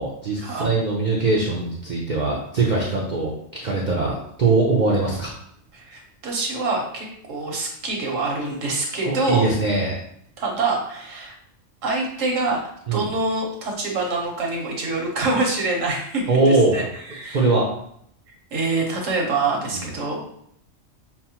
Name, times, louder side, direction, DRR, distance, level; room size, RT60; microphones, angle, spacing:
voice 1, 0.0-5.3 9.0-10.0 12.9-13.1 16.3-16.9 17.3-17.7 19.7-19.8, right 3 dB, 50° right, -4 dB, 0.6 m, -21 dB
voice 2, 5.7-9.5 10.4-11.3 11.8-12.6 12.9-16.8 17.1-17.4 18.5-20.2, right 3 dB, 80° right, 0 dB, 1.3 m, -25 dB
5.7 x 2.1 x 2.8 m, 0.69 s
omnidirectional pair, 1.3 m